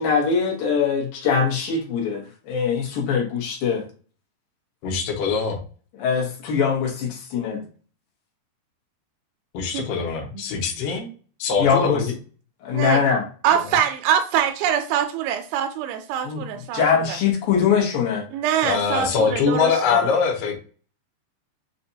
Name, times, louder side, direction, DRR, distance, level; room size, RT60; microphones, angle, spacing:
voice 1, 0.0-3.8 6.0-7.2 7.4-7.6 11.6-12.0 12.6-13.2 16.2-16.4 16.7-18.3, left 6 dB, 70° left, -2 dB, 2.3 m, -22 dB
voice 2, 4.8-5.6 9.5-10.2 10.5-11.1 11.4-12.1 18.6-20.6, left 6 dB, 90° left, 0 dB, 1.9 m, -22 dB
voice 3, 12.7-13.0 13.4-17.2 18.3-20.0, right 9 dB, 85° right, 6 dB, 2.8 m, -24 dB
7.1 x 2.5 x 2.7 m, 0.39 s
omnidirectional pair, 5.5 m